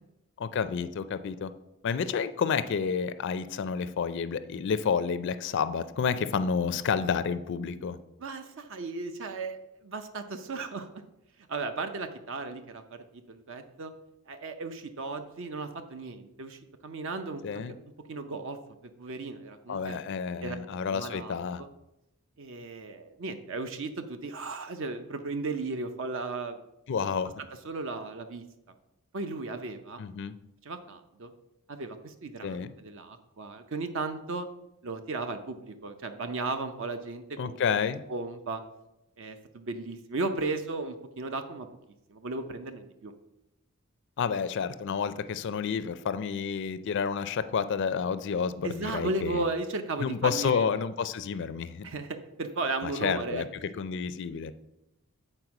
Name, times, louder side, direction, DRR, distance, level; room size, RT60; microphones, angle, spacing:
voice 1, 0.4-1.5 1.8-8.0 17.4-17.8 19.7-21.6 26.9-27.3 30.0-30.4 32.4-32.7 37.4-38.0 44.2-49.4 50.0-51.9 52.8-54.5, left 6 dB, 55° left, 13 dB, 0.4 m, -30 dB
voice 2, 8.2-10.9 11.5-13.0 13.3-13.9 14.3-17.6 18.1-18.6 19.0-20.0 20.4-20.6 20.9-21.7 22.4-26.6 27.6-28.4 29.1-30.0 30.6-31.3 31.7-34.5 34.8-37.6 38.1-38.6 39.2-41.7 42.1-43.1 48.6-50.7 51.8-53.4, right 3 dB, 60° right, 8 dB, 0.6 m, -35 dB
7.9 x 4.3 x 5.8 m, 0.89 s
head